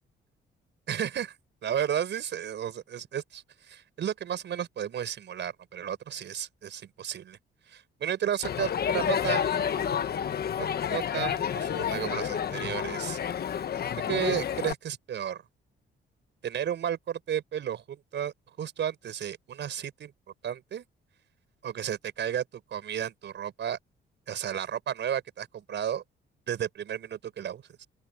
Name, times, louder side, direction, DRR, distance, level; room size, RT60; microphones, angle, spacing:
voice 1, 0.9-1.3 1.6-7.4 7.7-10.0 10.6-13.2 14.1-15.4 16.4-20.1 20.4-20.9 21.6-23.8 24.3-26.0 26.5-27.9, right 9 dB, 65° right, 5.1 m, -33 dB
Crowd, 8.4-14.7, left 8 dB, 50° left, 1.2 m, -29 dB
open air
cardioid pair, 90°, 20 cm